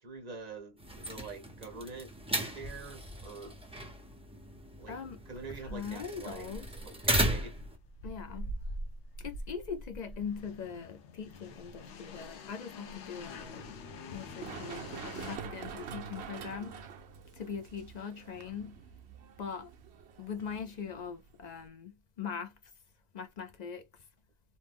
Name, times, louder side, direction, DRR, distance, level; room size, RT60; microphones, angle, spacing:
voice 1, 0.0-2.1 2.5-3.6 4.8-5.0 5.3-6.5 6.8-7.5, right 4 dB, 40° right, 0.9 m, -45 dB
sound 1, 0.8-7.8, right 1 dB, 5° right, 0.5 m, -36 dB
voice 2, 4.9-5.2 5.6-6.7 8.0-8.5 9.2-13.7 14.1-16.8 17.3-18.8 19.4-19.7 20.2-22.5 23.1-23.9, left 6 dB, 55° left, 0.5 m, -41 dB
sound 2, 5.4-15.4, left 1 dB, 80° left, 1.0 m, -45 dB
Run, 14.1-21.7, right 7 dB, 70° right, 0.8 m, -46 dB
3.0 x 2.0 x 3.3 m
omnidirectional pair, 1.2 m